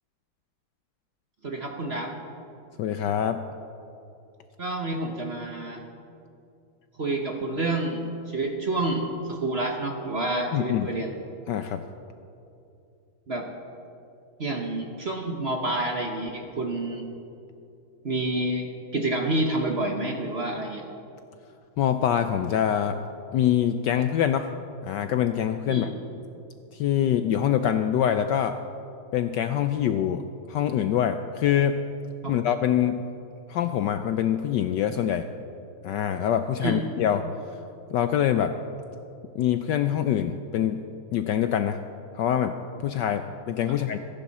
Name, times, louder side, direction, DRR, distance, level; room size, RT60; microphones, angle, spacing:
voice 1, 1.4-2.1 4.6-5.8 7.0-11.1 13.3-13.5 14.4-17.1 18.0-18.7 18.9-20.8 25.7-25.9 32.2-32.3 36.6-36.8, right 2 dB, 40° right, 2 dB, 1.0 m, -28 dB
voice 2, 2.8-3.4 10.5-10.9 11.5-11.8 21.8-23.0 23.3-24.5 24.8-25.9 26.7-28.6 29.1-30.2 30.5-31.8 32.3-33.0 33.5-35.3 35.8-37.3 37.9-38.5 39.3-40.8 41.1-41.8 42.1-42.5 42.8-44.0, left 10 dB, 75° left, 9 dB, 1.0 m, -24 dB
25.5 x 11.0 x 4.2 m, 2.7 s
omnidirectional pair, 2.3 m